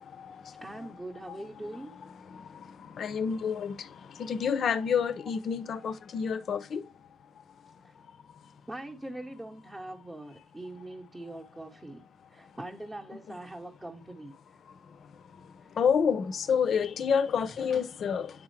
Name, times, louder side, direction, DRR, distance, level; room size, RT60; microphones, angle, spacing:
voice 1, 0.6-1.9 7.8-7.9 8.7-12.0 12.3-14.3, right 1 dB, 15° right, 0.7 m, -42 dB
voice 2, 3.0-3.8 4.2-6.8 13.3-13.4 15.8-18.3, left 6 dB, 60° left, 0.5 m, -28 dB
9.0 x 3.7 x 3.1 m
cardioid pair, 90°, 0 cm